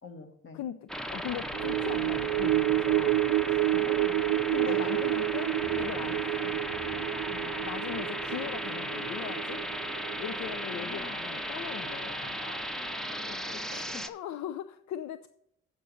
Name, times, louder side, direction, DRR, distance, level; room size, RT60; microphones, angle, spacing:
voice 1, 0.0-0.6 3.7-4.2 4.6-5.0 6.4-6.6 7.3-7.5 10.7-11.2 13.2-14.0, left 5 dB, 40° left, 6 dB, 1.6 m, -45 dB
voice 2, 0.5-3.9 4.5-6.5 7.5-9.6 10.2-12.4 14.0-15.3, left 10 dB, 70° left, 12 dB, 0.5 m, -39 dB
sound 1, 0.9-14.1, equal, ahead, 0.7 m, -36 dB
sound 2, 1.5-12.1 12.5-12.6, right 17 dB, 90° right, 0.5 m, -30 dB
sound 3, 5.6-14.0, left 2 dB, 85° left, 1.8 m, -47 dB
8.2 x 5.2 x 7.0 m, 0.73 s
cardioid pair, 90°, 30 cm